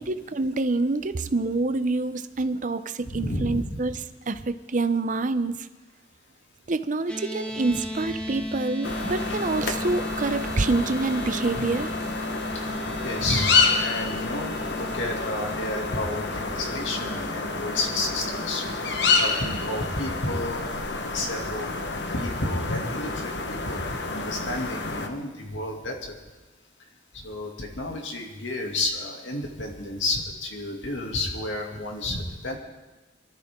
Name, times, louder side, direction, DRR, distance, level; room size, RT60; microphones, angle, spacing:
voice 1, 0.0-4.0 4.3-5.7 6.7-11.9, right 3 dB, 40° right, 12 dB, 0.6 m, -26 dB
voice 2, 3.0-3.8 11.6-11.7 13.0-18.6 19.2-20.6 21.0-21.7 22.1-26.2 27.1-32.6, left 2 dB, 80° left, 1 dB, 2.5 m, -31 dB
sound 1, 7.1-21.5, equal, 5° left, 1.2 m, -37 dB
sound 2, 8.8-25.1, left 4 dB, 60° left, 1.2 m, -29 dB
23.5 x 13.0 x 3.7 m, 1.2 s
head